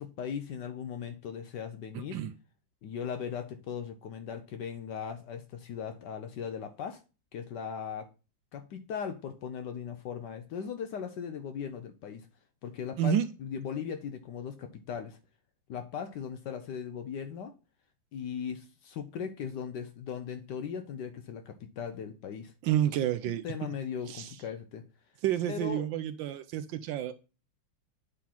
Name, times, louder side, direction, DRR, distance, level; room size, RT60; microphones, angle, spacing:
voice 1, 0.0-2.2 2.8-7.0 7.3-8.1 8.5-12.3 12.6-15.2 15.7-17.5 18.1-22.5 23.4-24.9 25.5-25.9, left 7 dB, 70° left, 1.1 m, -38 dB
voice 2, 13.0-13.3 22.6-23.4 24.1-24.3 25.2-27.1, right 11 dB, 75° right, 1.2 m, -29 dB
8.5 x 3.8 x 4.3 m
omnidirectional pair, 2.3 m